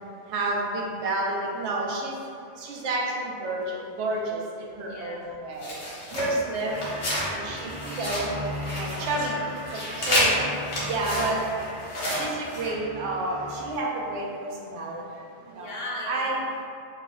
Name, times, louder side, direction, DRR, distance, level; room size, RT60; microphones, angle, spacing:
voice 1, 0.3-2.2 2.6-5.7 6.1-6.8 7.3-7.7 8.0-8.4 8.7-9.4 9.7-9.8 10.1-10.3 10.9-11.4 12.1-15.0 15.6-15.7 16.1-16.4, right 2 dB, 90° right, -2 dB, 0.9 m, -30 dB
voice 2, 4.7-5.7 7.6-7.9 9.8-10.9 11.4-11.5 15.4-16.6, left 1 dB, 65° left, -3 dB, 0.7 m, -40 dB
sound 1, 5.6-7.3 7.6-9.3 9.5-12.7, equal, 80° left, 1.2 m, -30 dB
sound 2, 6.7-13.8, left 1 dB, 40° right, 0.9 m, -38 dB
3.2 x 2.0 x 3.6 m, 2.5 s
omnidirectional pair, 1.1 m